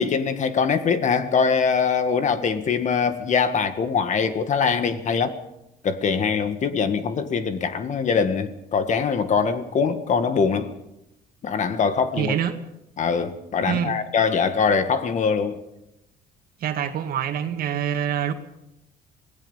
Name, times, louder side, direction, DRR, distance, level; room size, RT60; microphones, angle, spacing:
voice 1, 0.0-5.4 5.8-10.7 11.4-12.3 13.0-15.6, left 5 dB, 45° left, 1.7 m, -23 dB
voice 2, 12.2-12.5 13.6-13.9 16.6-18.3, right 9 dB, 60° right, 2.0 m, -25 dB
26.0 x 18.0 x 5.6 m
cardioid pair, 110°, 17 cm